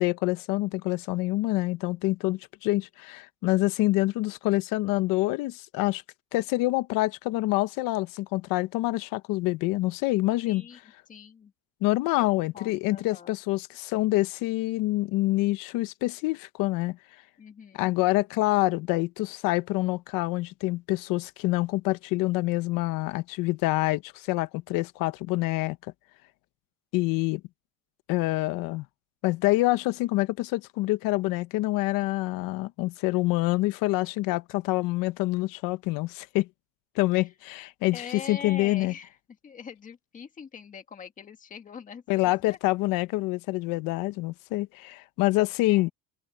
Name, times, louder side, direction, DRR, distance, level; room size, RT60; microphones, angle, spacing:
voice 1, 0.0-6.0 6.3-10.6 11.8-17.0 17.7-25.8 26.9-27.4 28.1-28.9 29.2-36.5 37.0-38.9 42.1-45.9, left 19 dB, 60° left, 1.0 m, -26 dB
voice 2, 10.5-10.8 11.1-11.5 12.2-13.3 17.4-17.9 37.9-39.2 39.4-42.6 45.7-45.9, left 6 dB, 20° left, 1.7 m, -43 dB
open air
cardioid pair, 175°, 38 cm